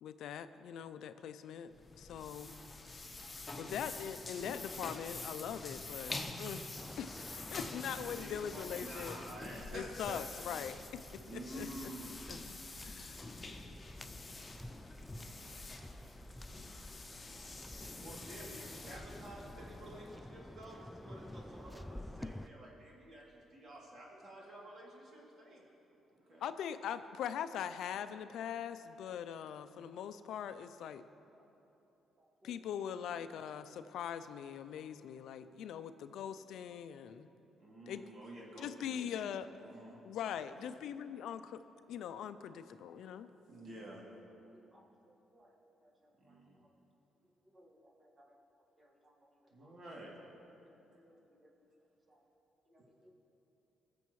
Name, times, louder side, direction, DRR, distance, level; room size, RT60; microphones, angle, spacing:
voice 1, 0.0-1.7 2.0-2.5 3.6-6.7 7.0-9.2 9.7-10.8 11.5-11.7 12.3-13.3 26.4-31.0 32.4-37.3 37.9-38.0 38.6-39.5 40.0-41.6 41.9-43.3, left 9 dB, 80° left, 11 dB, 0.4 m, -42 dB
sound 1, 1.7-20.2, left 3 dB, 25° left, 1.0 m, -47 dB
voice 2, 2.1-3.8 13.7-14.6 15.7-16.0 16.5-17.2 17.6-18.4 32.2-32.7 37.0-37.1 37.5-37.6 43.0-43.1 44.5-46.7 47.2-48.4 48.8-49.8 50.6-51.7 52.1-52.2 52.6-53.1, equal, 30° right, 0 dB, 1.9 m, -67 dB
Waves surf, 6.8-22.5, left 1 dB, 5° left, 0.3 m, -51 dB
voice 3, 7.9-10.2 11.2-12.3 18.0-25.6 26.1-26.9 37.6-40.0 40.5-40.8 43.5-44.0 46.2-46.6 49.5-50.1, right 1 dB, 50° right, -4 dB, 2.7 m, -50 dB
20.5 x 7.0 x 3.1 m, 3.0 s
cardioid pair, 90°, 0 cm